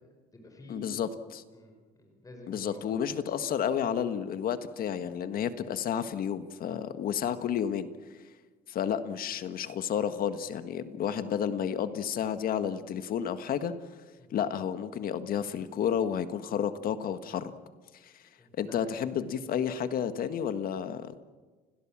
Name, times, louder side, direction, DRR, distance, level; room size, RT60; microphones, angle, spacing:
voice 1, 0.0-1.0 1.5-3.0 14.2-14.3 18.4-18.9, left 1 dB, 20° left, 3 dB, 5.3 m, -50 dB
voice 2, 0.7-1.4 2.5-7.9 8.7-13.7 14.3-17.5 18.0-18.1 18.6-21.2, left 8 dB, 60° left, 10 dB, 1.6 m, -31 dB
30.0 x 17.5 x 7.5 m, 1.4 s
cardioid pair, 110°, 17 cm